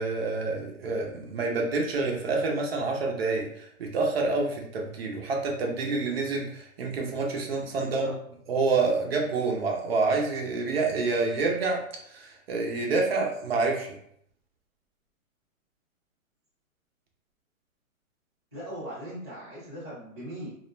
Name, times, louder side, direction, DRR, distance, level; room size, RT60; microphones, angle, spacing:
voice 1, 0.0-8.1 8.5-11.8 12.1-13.9, right 3 dB, 45° right, 0 dB, 0.5 m, -27 dB
voice 2, 7.8-8.1 18.5-20.6, equal, 20° left, -10 dB, 0.3 m, -39 dB
2.3 x 2.0 x 3.0 m, 0.69 s
hypercardioid pair, 150°, 42 cm